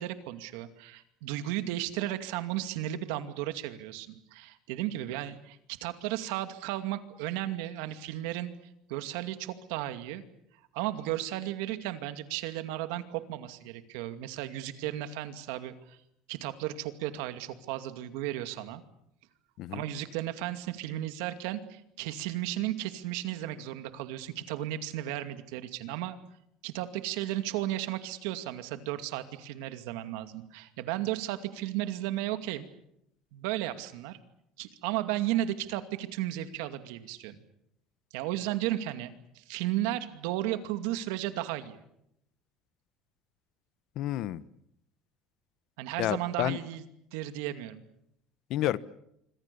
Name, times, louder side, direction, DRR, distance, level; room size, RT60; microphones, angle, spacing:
voice 1, 0.0-8.5 8.9-10.2 10.7-16.0 16.3-18.8 19.7-26.2 26.6-32.6 33.3-34.2 34.6-37.4 38.1-41.8 45.8-46.8 47.1-47.8, right 14 dB, 85° right, 9 dB, 2.4 m, -34 dB
voice 2, 44.0-44.4 46.0-46.6 48.5-48.8, left 14 dB, 60° left, 17 dB, 1.1 m, -30 dB
26.5 x 25.5 x 7.0 m, 0.77 s
cardioid pair, 125°, 0 cm